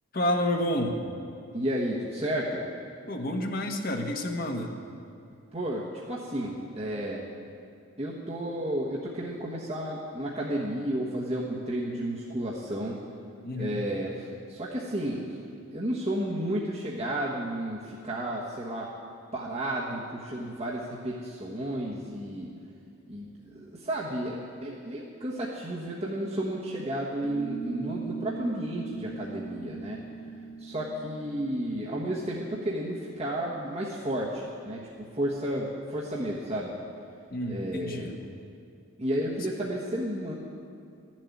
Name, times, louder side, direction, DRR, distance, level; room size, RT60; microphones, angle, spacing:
voice 1, 0.1-1.0 3.1-4.7 13.4-13.8 37.3-38.1, left 1 dB, 40° left, 3 dB, 1.3 m, -29 dB
voice 2, 1.5-2.6 5.5-7.2 8.0-12.9 13.6-15.2 15.7-18.9 19.3-22.5 23.1-30.0 30.6-36.7 37.5-38.1 39.0-40.3, right 1 dB, 30° right, -5 dB, 1.2 m, -32 dB
sound 1, 27.2-34.2, right 4 dB, 75° left, 1.3 m, -40 dB
13.0 x 7.5 x 9.6 m, 2.4 s
head